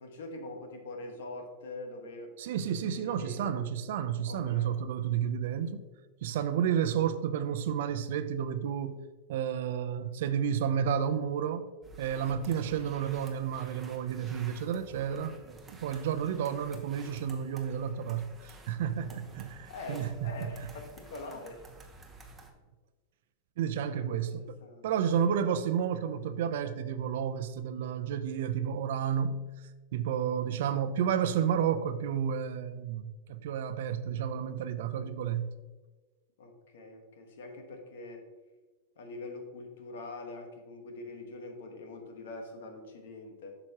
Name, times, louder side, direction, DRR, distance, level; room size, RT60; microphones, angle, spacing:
voice 1, 0.0-2.4 2.8-3.6 4.2-4.7 19.7-21.6 23.7-24.9 34.7-35.1 36.4-38.2 39.0-43.6, left 2 dB, 85° left, 1.3 m, -44 dB
voice 2, 2.4-5.8 6.2-11.7 12.0-20.1 20.4-20.7 23.6-24.5 24.8-29.5 29.9-35.5, right 8 dB, 75° right, 0.5 m, -31 dB
sound 1, 11.8-22.5, right 2 dB, 15° right, 1.0 m, -52 dB
7.8 x 6.0 x 2.9 m
supercardioid pair, 135°, 0 cm